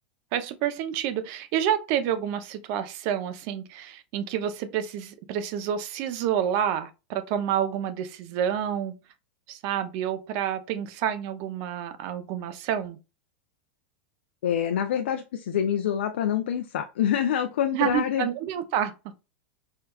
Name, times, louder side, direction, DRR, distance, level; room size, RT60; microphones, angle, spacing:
voice 1, 0.3-8.9 9.5-13.0 17.7-18.9, right 9 dB, 45° right, 0.6 m, -28 dB
voice 2, 14.4-18.3, left 9 dB, 90° left, 0.4 m, -26 dB
4.5 x 2.3 x 2.2 m
supercardioid pair, 145°, 6 cm